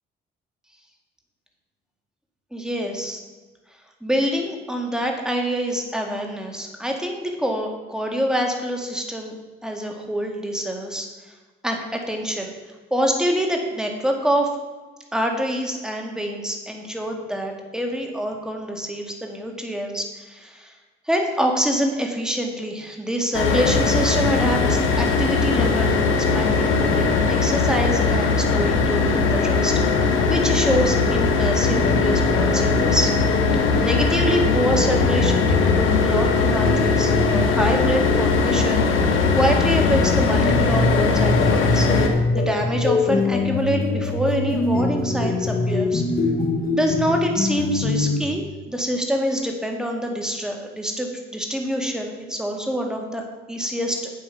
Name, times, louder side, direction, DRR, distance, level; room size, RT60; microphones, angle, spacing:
voice 1, 2.5-3.2 4.0-9.4 9.6-11.1 11.6-12.5 12.9-14.5 15.1-20.7 21.1-26.0 26.3-29.8 30.3-33.1 33.8-39.0 39.4-41.9 42.3-46.0 46.7-54.1, equal, 5° right, 2 dB, 2.0 m, -26 dB
sound 1, 23.3-42.1, left 4 dB, 85° left, 1.4 m, -20 dB
sound 2, 31.6-48.2, left 3 dB, 45° left, 1.5 m, -24 dB
8.2 x 7.8 x 5.9 m, 1.3 s
cardioid pair, 90°, 20 cm